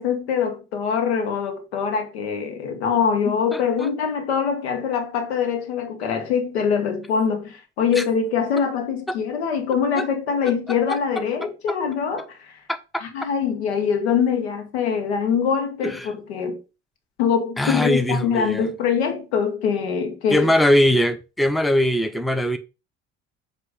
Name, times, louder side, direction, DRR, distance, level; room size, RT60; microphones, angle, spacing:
voice 1, 0.0-12.6 13.0-16.6 17.2-20.5, left 6 dB, 75° left, 1.3 m, -23 dB
voice 2, 3.3-3.9 8.0-8.1 9.1-9.2 10.0-10.1 10.9-11.0 12.7-12.8 15.8-16.1 17.6-18.7 20.3-22.6, left 1 dB, ahead, 0.8 m, -21 dB
7.8 x 3.0 x 5.0 m
figure-of-eight pair, 60°, 32 cm